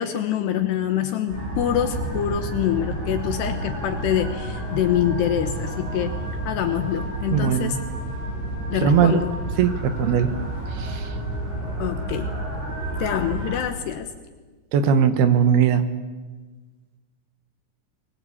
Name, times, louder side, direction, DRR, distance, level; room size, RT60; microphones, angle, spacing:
voice 1, 0.0-6.2 6.5-7.8 8.7-9.4 11.8-12.4 13.0-14.1, left 10 dB, 70° left, 7 dB, 3.0 m, -25 dB
sound 1, 1.3-13.6, right 1 dB, 90° right, 10.5 m, -30 dB
voice 2, 7.3-7.8 8.8-9.2 9.6-10.3 10.8-11.1 14.7-15.8, right 8 dB, 70° right, 10 dB, 2.7 m, -19 dB
23.0 x 21.0 x 8.6 m, 1.3 s
omnidirectional pair, 5.4 m